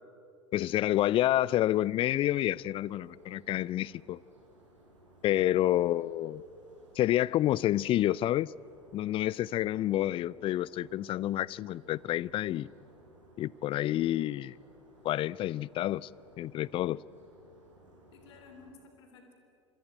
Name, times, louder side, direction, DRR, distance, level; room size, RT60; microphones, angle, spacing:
voice 1, 0.5-4.2 5.2-6.4 7.0-8.5 8.9-12.7 13.4-14.5 15.0-16.1 16.4-17.0, left 14 dB, 35° left, 0.5 m, -29 dB
sound 1, 0.5-18.7, right 1 dB, 85° right, 6.8 m, -60 dB
voice 2, 5.5-6.1 18.1-19.3, left 4 dB, 65° left, 3.5 m, -55 dB
27.0 x 24.0 x 9.1 m
figure-of-eight pair, 75°, 15 cm